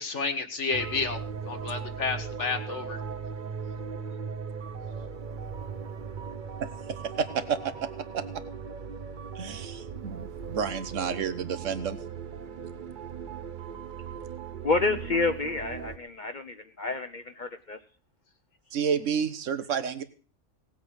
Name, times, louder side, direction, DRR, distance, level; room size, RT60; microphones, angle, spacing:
voice 1, 0.0-3.0, left 4 dB, 65° left, 7 dB, 1.9 m, -31 dB
sound 1, 0.7-16.0, right 6 dB, 45° right, 0.8 m, -38 dB
voice 2, 7.2-7.9 8.1-8.2 9.3-12.0 18.7-20.0, right 7 dB, 75° right, 12 dB, 1.5 m, -30 dB
voice 3, 14.6-17.8, left 3 dB, 45° left, 7 dB, 0.8 m, -29 dB
18.0 x 8.2 x 6.4 m, 0.38 s
omnidirectional pair, 1.3 m